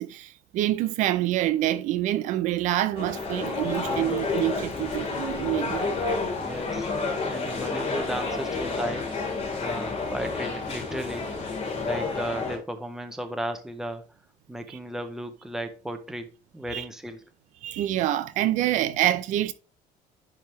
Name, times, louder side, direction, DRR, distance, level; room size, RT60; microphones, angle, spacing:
voice 1, 0.0-5.9 14.7-14.8 16.7-16.8 17.6-19.5, right 13 dB, 60° right, 0.5 m, -26 dB
sound 1, 3.0-12.6, left 3 dB, 45° left, 2.4 m, -30 dB
voice 2, 6.4-6.9 7.2-9.1 9.6-11.3 11.8-14.0 14.5-17.2, right 1 dB, 5° right, 0.6 m, -35 dB
10.5 x 3.5 x 3.1 m
cardioid pair, 170°, 14 cm